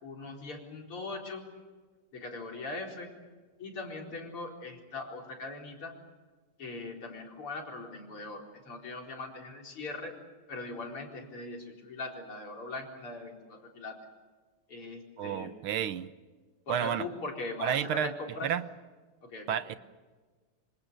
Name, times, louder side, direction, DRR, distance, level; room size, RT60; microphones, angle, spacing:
voice 1, 0.0-1.4 2.1-3.1 3.6-6.0 6.6-10.1 10.5-14.0 14.7-15.5 16.7-18.5 19.2-19.6, left 3 dB, 80° left, 1 dB, 5.2 m, -40 dB
voice 2, 15.2-16.1 16.7-17.0 17.6-18.1 18.4-18.6 19.5-19.8, right 9 dB, 75° right, 12 dB, 1.8 m, -31 dB
26.5 x 26.0 x 6.9 m, 1.3 s
omnidirectional pair, 2.4 m